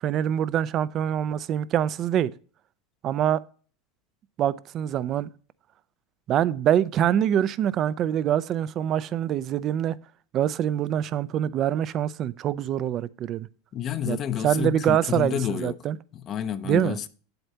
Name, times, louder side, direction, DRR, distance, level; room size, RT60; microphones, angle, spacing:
voice 1, 0.0-2.3 3.0-3.4 4.4-5.3 6.3-10.0 10.3-13.5 14.1-14.2 14.4-16.0 16.6-17.0, right 10 dB, 40° right, 0.4 m, -25 dB
voice 2, 13.7-15.7 16.1-17.1, left 9 dB, 35° left, 0.6 m, -29 dB
7.9 x 7.9 x 2.8 m
supercardioid pair, 135°, 0 cm